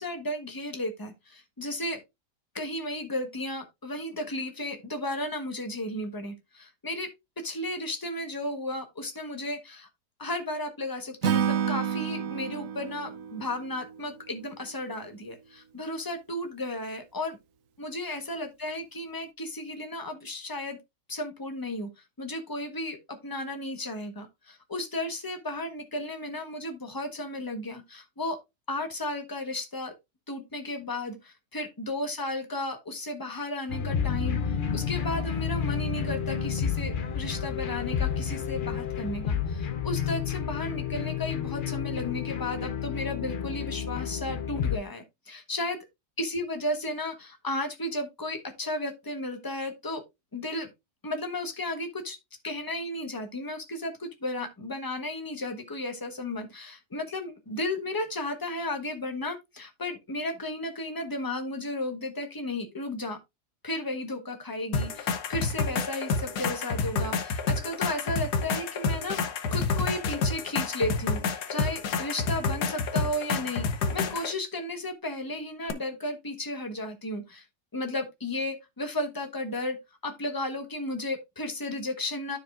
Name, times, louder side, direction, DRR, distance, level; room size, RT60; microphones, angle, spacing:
voice 1, 0.0-2.0 2.5-7.1 7.4-9.9 10.2-17.4 17.8-20.8 21.1-21.9 22.2-28.4 28.7-29.9 30.3-34.4 34.7-45.8 46.2-50.0 50.3-50.7 51.0-52.2 52.4-63.2 63.6-69.2 69.5-73.7 73.9-77.4 77.7-82.4, left 1 dB, 15° left, 1.1 m, -34 dB
Acoustic guitar / Strum, 11.2-14.5, right 8 dB, 60° right, 0.9 m, -30 dB
sound 1, 33.7-44.8, left 7 dB, 55° left, 0.5 m, -30 dB
sound 2, 64.7-74.3 75.7-75.8, left 4 dB, 75° left, 1.5 m, -29 dB
13.0 x 4.8 x 2.5 m
omnidirectional pair, 1.8 m